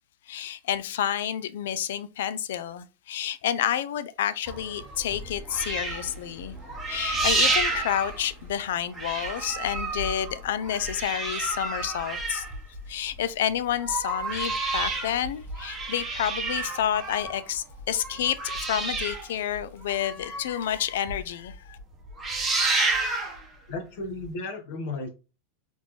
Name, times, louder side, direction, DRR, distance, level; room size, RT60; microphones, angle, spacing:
voice 1, 0.3-6.6 6.9-12.5 12.9-21.8, left 10 dB, 80° left, 0.4 m, -29 dB
sound 1, 4.5-8.7 8.9-13.2 13.6-20.7 21.1-21.2 21.5-21.8 22.0-23.4 24.2-24.3, right 3 dB, 10° right, 0.9 m, -30 dB
voice 2, 23.7-25.1, left 2 dB, 55° left, 1.2 m, -34 dB
4.1 x 3.5 x 3.0 m
supercardioid pair, 165°, 0 cm